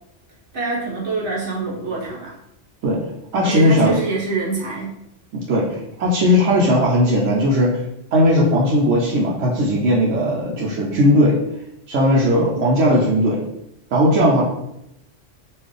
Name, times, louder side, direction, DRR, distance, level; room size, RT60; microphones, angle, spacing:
voice 1, 0.5-2.3 3.4-4.9, right 3 dB, 70° right, -4 dB, 1.5 m, -25 dB
voice 2, 3.3-4.0 5.5-7.7 8.1-11.4 11.9-13.4 13.9-14.4, equal, 90° right, -5 dB, 1.1 m, -17 dB
4.5 x 2.5 x 3.2 m, 0.81 s
omnidirectional pair, 1.2 m